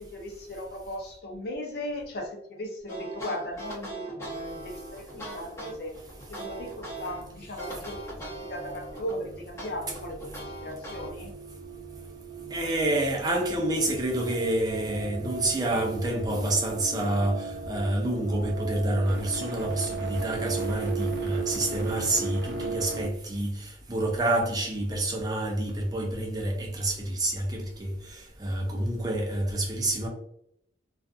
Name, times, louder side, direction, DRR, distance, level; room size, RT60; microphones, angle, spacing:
voice 1, 0.0-6.0 6.3-8.0 8.4-11.3, left 1 dB, 60° left, 0.6 m, -37 dB
sound 1, 2.9-7.2 7.6-9.2 9.6-11.1, right 2 dB, 15° left, 0.8 m, -40 dB
sound 2, 4.1-23.1, right 4 dB, 85° right, 0.6 m, -38 dB
voice 2, 12.5-30.1, right 1 dB, 20° right, 0.5 m, -28 dB
2.4 x 2.4 x 2.4 m
head